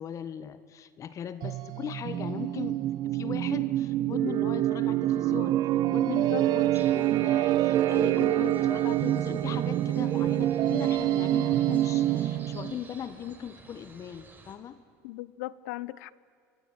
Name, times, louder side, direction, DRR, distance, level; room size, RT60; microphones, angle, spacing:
voice 1, 0.0-2.8 3.0-5.6 5.9-14.8, left 9 dB, 40° left, 13 dB, 1.4 m, -39 dB
sound 1, 1.4-12.8, right 13 dB, 55° right, 1.0 m, -26 dB
voice 2, 6.0-6.4 15.0-16.1, left 18 dB, 80° left, 19 dB, 0.8 m, -37 dB
sound 2, 6.7-14.6, right 3 dB, 20° right, 4.9 m, -52 dB
26.5 x 24.0 x 8.9 m, 2.2 s
supercardioid pair, 105°, 8 cm